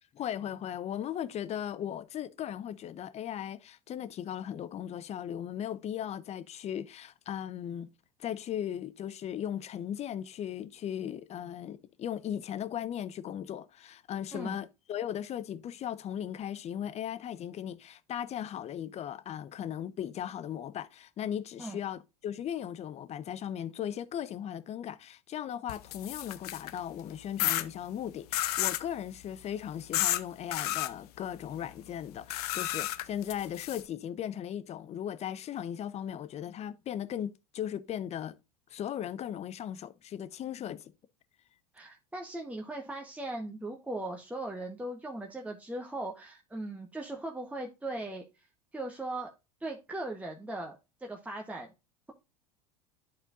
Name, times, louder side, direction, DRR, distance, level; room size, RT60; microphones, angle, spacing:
voice 1, 0.1-7.9 8.2-38.4 38.7-40.9, left 10 dB, 35° left, 0.7 m, -37 dB
sound 1, 25.7-26.8 27.4-27.6 28.3-28.8 29.9-30.2 30.5-30.9 32.3-33.8, left 14 dB, 70° left, 0.6 m, -31 dB
voice 2, 41.7-48.5 48.7-49.3 49.6-51.7, right 2 dB, 5° right, 1.0 m, -39 dB
11.0 x 4.4 x 2.4 m
hypercardioid pair, 80°, 20 cm